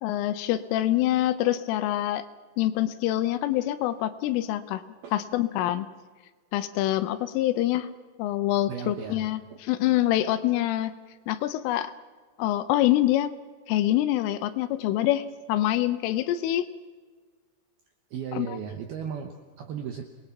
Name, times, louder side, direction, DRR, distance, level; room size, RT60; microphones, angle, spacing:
voice 1, 0.0-2.2 2.6-4.8 5.1-5.9 6.5-7.9 8.2-10.9 11.3-11.9 12.4-13.3 13.7-16.7 18.3-18.6, left 14 dB, 80° left, 12 dB, 3.2 m, -25 dB
voice 2, 8.7-9.6 18.1-20.0, right 7 dB, 75° right, 5 dB, 2.3 m, -36 dB
28.0 x 20.0 x 5.9 m, 1.5 s
omnidirectional pair, 6.0 m